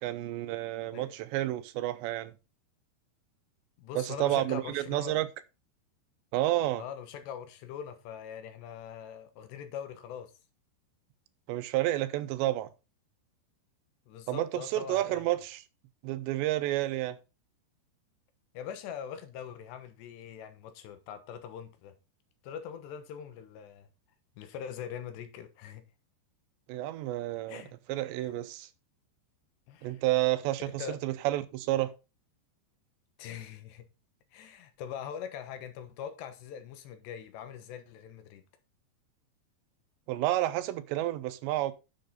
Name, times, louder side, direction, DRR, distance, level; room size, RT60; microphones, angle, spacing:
voice 1, 0.0-2.3 4.0-5.3 6.3-6.8 11.5-12.7 14.3-15.6 16.0-17.2 26.7-27.6 27.9-28.7 29.8-31.9 40.1-41.7, right 15 dB, 85° right, 2.9 m, -30 dB
voice 2, 3.8-5.2 6.8-10.3 14.1-15.3 18.5-22.0 22.4-23.9 24.4-25.8 27.5-27.8 28.2-28.3 29.7-30.0 30.8-30.9 33.2-33.9 34.3-38.4, left 8 dB, 80° left, 3.3 m, -42 dB
10.5 x 6.7 x 4.0 m
omnidirectional pair, 5.0 m